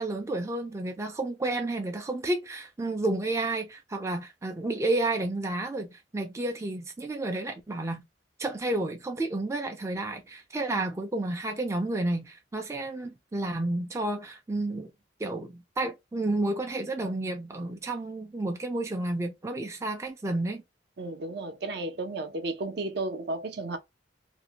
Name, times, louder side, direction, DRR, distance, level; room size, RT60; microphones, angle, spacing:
voice 1, 0.0-8.0 8.4-14.9 15.2-20.6, right 2 dB, 15° right, 0.3 m, -31 dB
voice 2, 21.0-23.8, right 2 dB, 60° right, 0.6 m, -33 dB
2.5 x 2.1 x 2.8 m
head